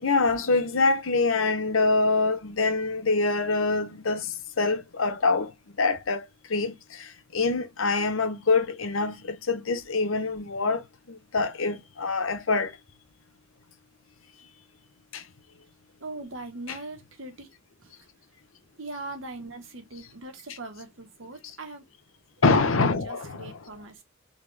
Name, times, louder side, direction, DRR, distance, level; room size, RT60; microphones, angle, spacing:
voice 1, 0.0-5.5 5.8-6.2 6.5-10.8 11.1-12.7 15.1-15.2 16.7-16.8 20.5-20.6 22.4-23.6, left 3 dB, 85° left, 0.9 m, -25 dB
voice 2, 16.0-17.5 17.8-18.1 18.8-21.8 22.5-22.8 23.0-24.0, right 2 dB, 80° right, 1.3 m, -40 dB
3.9 x 3.2 x 3.4 m
head